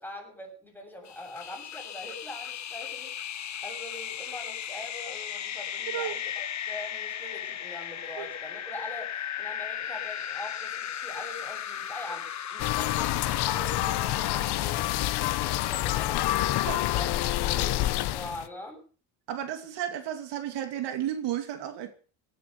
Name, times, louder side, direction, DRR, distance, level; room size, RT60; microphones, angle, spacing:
voice 1, 0.0-3.1 3.4-18.8, left 1 dB, 5° left, 7.7 m, -43 dB
sound 1, 1.1-14.5, left 9 dB, 40° left, 1.4 m, -36 dB
sound 2, 12.6-18.5, left 15 dB, 60° left, 1.1 m, -27 dB
voice 2, 19.3-21.9, right 11 dB, 65° right, 2.7 m, -33 dB
18.0 x 11.0 x 6.9 m
cardioid pair, 135°, 44 cm